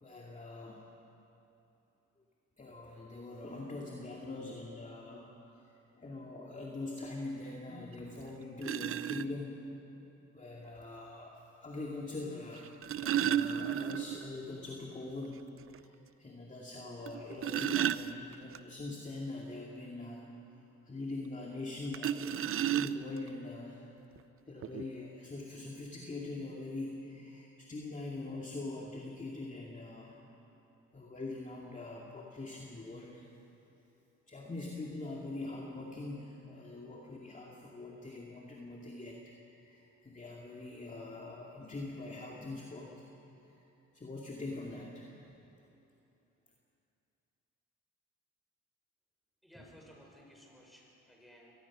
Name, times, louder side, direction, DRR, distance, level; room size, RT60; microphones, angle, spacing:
voice 1, 0.0-0.8 2.6-5.6 6.0-9.7 10.3-20.2 20.8-23.8 24.5-30.2 30.9-33.3 34.3-43.1 43.5-43.6 43.9-45.1, left 2 dB, 25° left, -2 dB, 2.4 m, -43 dB
sound 1, 7.9-8.0 8.6-9.3 10.6-10.7 12.5-14.3 14.6-14.7 15.1-15.2 15.7-15.8 17.1-18.6 21.9-23.3 24.2-24.3 24.6-24.8, right 10 dB, 45° right, 0.6 m, -33 dB
voice 2, 49.4-51.5, equal, ahead, -2 dB, 6.1 m, -57 dB
23.5 x 18.5 x 6.2 m, 2.9 s
cardioid pair, 90°, 30 cm